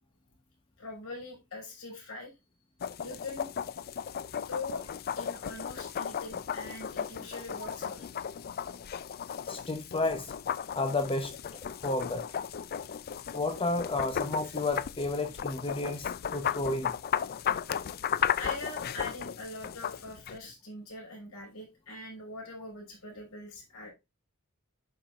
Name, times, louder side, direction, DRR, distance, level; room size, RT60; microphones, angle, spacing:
voice 1, 0.8-2.3 3.0-3.5 4.5-4.9 5.2-8.1 18.4-23.9, left 2 dB, 75° left, 5.4 m, -42 dB
sound 1, 2.8-20.4, left 8 dB, 45° left, 0.4 m, -35 dB
voice 2, 9.5-10.3 10.7-11.3 11.8-12.2 13.3-16.9, left 2 dB, 25° left, 0.9 m, -31 dB
11.5 x 5.5 x 2.4 m
head